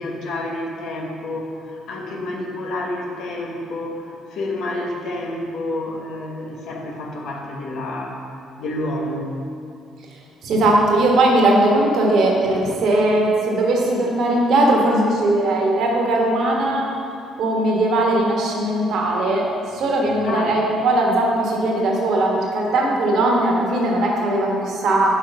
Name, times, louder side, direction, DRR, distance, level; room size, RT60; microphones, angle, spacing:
voice 1, 0.0-8.2 8.6-9.3 20.2-20.6, left 1 dB, 65° left, -1 dB, 1.1 m, -29 dB
voice 2, 10.4-16.9 17.4-25.1, right 1 dB, 65° right, -1 dB, 1.4 m, -19 dB
5.7 x 4.9 x 6.0 m, 2.4 s
hypercardioid pair, 55°, 0 cm